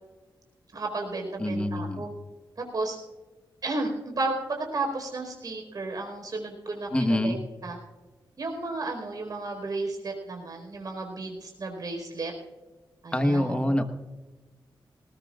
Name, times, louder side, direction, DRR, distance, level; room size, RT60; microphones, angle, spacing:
voice 1, 0.7-2.1 2.6-3.0 3.6-7.4 7.6-7.8 8.4-12.3 13.0-13.6, right 2 dB, 50° right, 2 dB, 4.6 m, -33 dB
voice 2, 1.4-2.1 6.9-7.4 13.1-13.8, left 1 dB, 15° left, 7 dB, 1.3 m, -25 dB
20.0 x 19.0 x 2.5 m, 1.2 s
wide cardioid pair, 125°, 8 cm